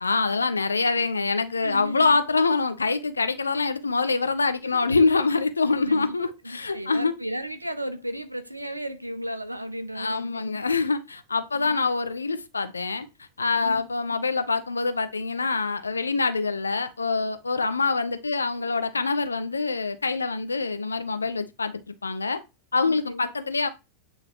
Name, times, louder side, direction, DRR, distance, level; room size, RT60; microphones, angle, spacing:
voice 1, 0.0-7.1 9.9-13.1 13.4-22.4 22.7-23.7, left 4 dB, 75° left, 0.8 m, -25 dB
voice 2, 1.6-2.2 4.6-4.9 5.9-6.2 6.4-10.6 11.5-11.8 13.6-13.8 14.1-14.2 22.8-23.2, equal, 85° right, 0.8 m, -34 dB
9.0 x 3.9 x 3.1 m
figure-of-eight pair, 90°, 0 cm